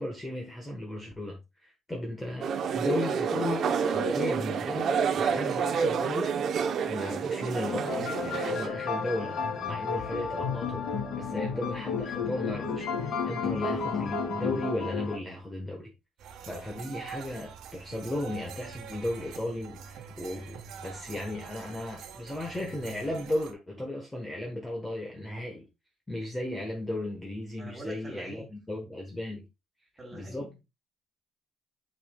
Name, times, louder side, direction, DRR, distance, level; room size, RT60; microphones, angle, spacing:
voice 1, 0.0-6.4 6.9-10.9 11.1-15.9 16.5-25.7 26.1-29.5 30.1-30.5, left 1 dB, 10° left, 1.2 m, -35 dB
sound 1, 2.4-8.7, right 6 dB, 45° right, 0.7 m, -29 dB
sound 2, 7.6-15.2, left 5 dB, 60° left, 2.4 m, -32 dB
sound 3, 16.2-23.5, right 7 dB, 70° right, 1.2 m, -45 dB
voice 2, 16.7-17.1 27.6-28.5 30.0-30.5, right 1 dB, 20° right, 3.4 m, -45 dB
9.6 x 5.4 x 2.3 m
cardioid pair, 175°, 0 cm